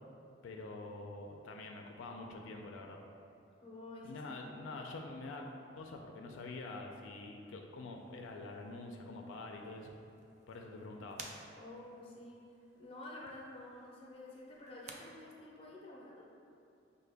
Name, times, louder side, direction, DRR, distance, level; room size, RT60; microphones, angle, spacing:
voice 1, 0.4-3.0 4.0-5.5 5.8-9.9 10.5-11.2, left 2 dB, 85° left, 2 dB, 0.4 m, -46 dB
voice 2, 3.6-4.3 4.6-4.8 11.6-16.3, left 2 dB, 30° left, -3 dB, 0.6 m, -50 dB
sound 1, 7.9-15.0, right 4 dB, 35° right, 0.3 m, -57 dB
5.6 x 2.2 x 3.3 m, 2.7 s
head